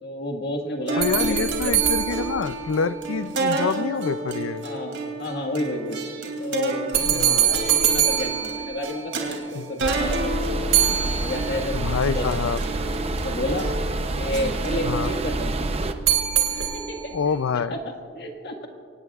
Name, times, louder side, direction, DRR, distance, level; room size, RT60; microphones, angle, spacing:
voice 1, 0.0-1.7 4.6-6.0 6.4-10.4 11.0-12.3 13.2-13.7 14.1-15.5 16.7-18.7, left 1 dB, 55° left, 3 dB, 1.7 m, -31 dB
sound 1, 0.9-17.3, right 2 dB, 65° right, 2.6 m, -31 dB
voice 2, 1.0-4.6 7.1-7.4 9.5-9.8 11.7-12.6 14.8-15.1 17.1-17.7, left 5 dB, 90° left, 15 dB, 0.5 m, -26 dB
sound 2, 1.0-3.4 6.9-9.4 10.7-11.9 16.1-17.3, right 10 dB, 80° right, 2.3 m, -24 dB
sound 3, 9.8-15.9, right 2 dB, 30° right, 0.7 m, -28 dB
24.5 x 19.0 x 2.4 m, 2.2 s
head